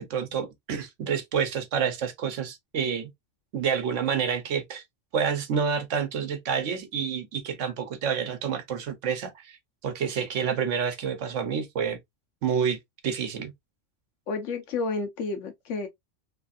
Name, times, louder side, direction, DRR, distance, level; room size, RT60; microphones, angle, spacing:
voice 1, 0.0-3.1 3.5-4.8 5.1-9.6 9.8-12.0 12.4-12.8 13.0-13.5, right 7 dB, 90° right, 1.1 m, -28 dB
voice 2, 14.3-15.9, left 4 dB, 80° left, 1.2 m, -31 dB
3.3 x 2.4 x 2.5 m
omnidirectional pair, 1.2 m